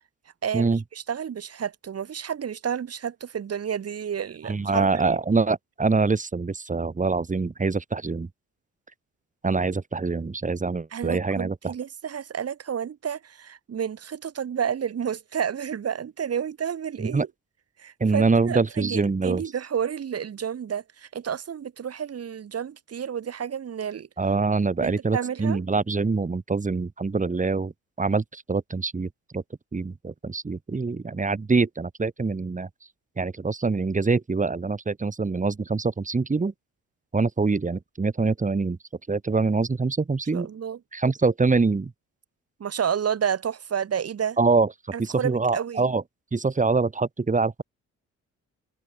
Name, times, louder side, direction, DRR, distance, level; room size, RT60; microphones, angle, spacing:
voice 1, 0.4-0.7 1.1-5.2 10.9-17.3 17.8-24.1 24.8-25.6 40.3-40.8 42.6-44.4 44.9-45.8, right 8 dB, 55° right, 5.1 m, -30 dB
voice 2, 4.4-8.3 9.4-11.7 17.0-17.3 18.0-19.4 24.2-27.7 28.0-29.4 29.7-32.7 33.2-36.5 37.1-38.8 39.1-40.5 40.9-41.9 44.4-44.7 45.0-46.0 46.3-47.6, right 4 dB, 25° right, 4.3 m, -24 dB
cardioid pair, 90°, 30 cm